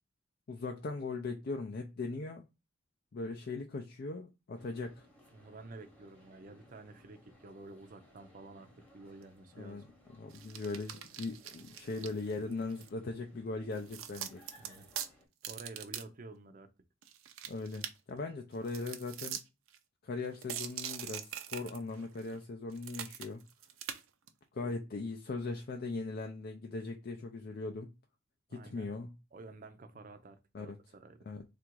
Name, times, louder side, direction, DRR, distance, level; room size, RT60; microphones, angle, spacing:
voice 1, 0.5-2.4 3.1-5.1 9.5-9.8 10.2-14.4 17.5-19.4 20.0-23.4 24.5-27.9 28.5-29.1 30.5-30.8 31.3-31.4, left 3 dB, 50° left, 0.4 m, -39 dB
sound 1, 4.6-15.3, left 1 dB, 5° left, 1.0 m, -62 dB
voice 2, 5.3-9.9 14.6-14.9 15.4-16.7 24.6-24.7 28.5-28.9 29.3-31.3, right 3 dB, 40° right, 0.5 m, -51 dB
sound 2, 10.3-12.9 13.8-15.1 15.4-16.0 16.3-16.4 17.0-17.9 18.7-19.4 19.7-19.8 20.3-22.4 22.7-24.0 24.3-24.4, right 10 dB, 90° right, 0.6 m, -43 dB
3.5 x 2.5 x 4.4 m
head